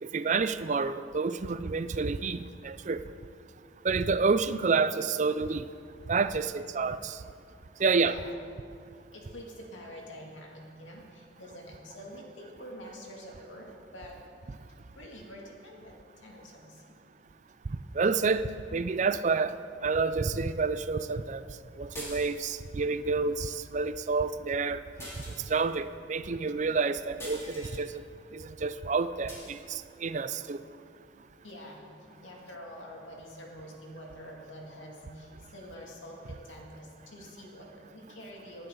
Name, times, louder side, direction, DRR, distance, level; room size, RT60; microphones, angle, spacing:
voice 1, 0.0-3.0 3.8-5.6 6.1-7.2 7.8-8.1 18.0-19.5 19.8-21.4 21.8-24.8 25.5-27.9 28.3-30.6, right 4 dB, 40° right, 13 dB, 0.4 m, -29 dB
voice 2, 8.0-8.3 9.1-14.2 14.9-16.8 31.4-31.8 32.2-38.7, equal, 80° left, -1 dB, 2.4 m, -46 dB
sound 1, 21.9-22.7 25.0-25.8 27.2-27.8 29.3-29.6, equal, 15° left, 3.1 m, -44 dB
20.0 x 11.0 x 3.8 m, 2.3 s
head